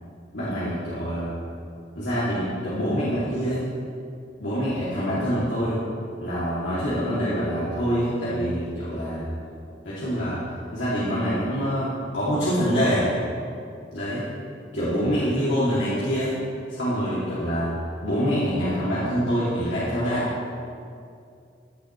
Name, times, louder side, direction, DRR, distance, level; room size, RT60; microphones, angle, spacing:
voice 1, 0.3-1.3 1.9-3.6 4.4-5.8 6.2-9.3 9.8-10.4 10.7-13.1 13.9-14.3 14.7-16.3 16.7-17.7 18.0-20.3, equal, 90° left, -11 dB, 3.0 m, -25 dB
16.0 x 10.0 x 3.4 m, 2.4 s
head